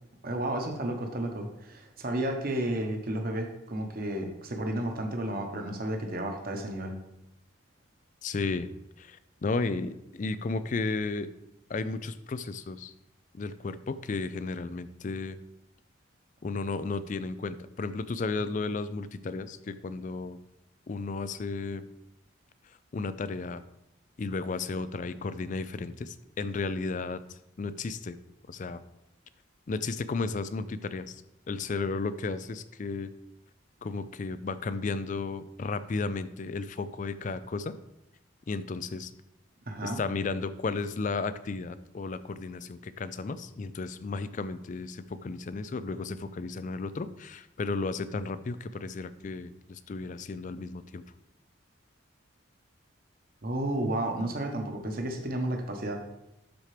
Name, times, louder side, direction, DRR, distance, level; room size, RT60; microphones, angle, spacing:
voice 1, 0.2-7.0 39.7-40.0 53.4-56.0, right 1 dB, 45° right, 3 dB, 1.1 m, -32 dB
voice 2, 8.2-8.7 9.0-11.3 11.7-12.9 13.3-15.4 16.4-20.4 20.9-21.9 22.9-23.6 24.2-28.2 28.5-28.8 29.7-31.2 31.5-33.1 33.8-37.8 38.5-39.1 39.8-51.0, left 3 dB, 40° left, 13 dB, 0.4 m, -34 dB
12.0 x 4.4 x 3.3 m, 0.87 s
head